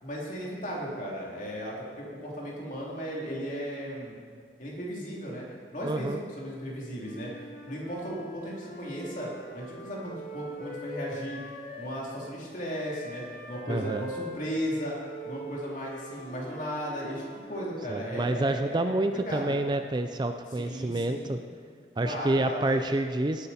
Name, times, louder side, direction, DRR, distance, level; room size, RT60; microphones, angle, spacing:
voice 1, 0.0-4.1 4.6-5.5 5.7-9.3 9.5-11.4 11.8-15.0 15.2-19.6 20.6-21.4 22.0-22.9, equal, 45° left, -4 dB, 3.1 m, -36 dB
voice 2, 5.8-6.2 13.7-14.1 17.9-21.4 22.0-23.5, right 2 dB, 25° right, 7 dB, 0.4 m, -28 dB
Wind instrument woodwind instrument, 7.0-12.0 12.7-17.7, equal, 65° left, 4.0 m, -43 dB
17.5 x 9.5 x 4.3 m, 2.1 s
head